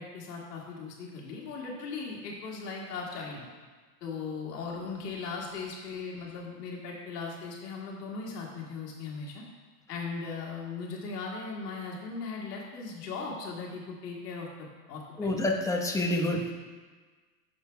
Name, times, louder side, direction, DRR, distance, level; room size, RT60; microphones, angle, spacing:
voice 1, 0.0-3.5 4.0-9.4 9.9-14.5 14.9-15.3 16.2-16.4, left 4 dB, 80° left, -3 dB, 2.1 m, -38 dB
voice 2, 15.2-16.5, left 1 dB, 5° left, 0 dB, 1.0 m, -28 dB
14.5 x 5.7 x 2.3 m, 1.4 s
hypercardioid pair, 100°, 47 cm